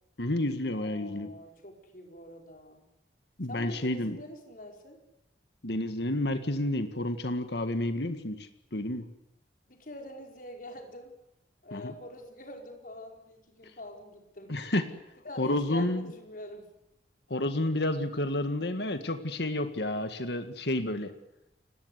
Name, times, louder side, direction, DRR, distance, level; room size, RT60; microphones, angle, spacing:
voice 1, 0.2-1.3 3.4-4.2 5.6-9.1 11.7-11.9 14.5-14.8 15.4-16.1 17.3-21.1, left 1 dB, 65° left, 9 dB, 1.8 m, -30 dB
voice 2, 0.7-2.8 3.5-5.0 9.7-11.1 11.6-14.6 15.2-16.7, left 1 dB, 45° left, 3 dB, 4.9 m, -45 dB
29.5 x 18.5 x 8.2 m, 0.85 s
head